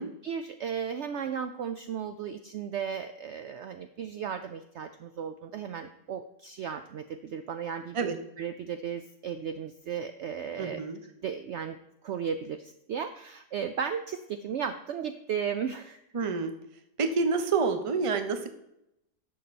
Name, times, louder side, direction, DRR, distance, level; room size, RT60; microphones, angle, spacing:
voice 1, 0.2-10.8 11.2-11.8 12.0-16.0, right 7 dB, 80° right, 9 dB, 0.6 m, -35 dB
voice 2, 10.6-11.0 16.1-16.5 17.0-18.5, right 4 dB, 35° right, 8 dB, 0.5 m, -28 dB
11.0 x 6.7 x 4.2 m, 0.84 s
omnidirectional pair, 1.7 m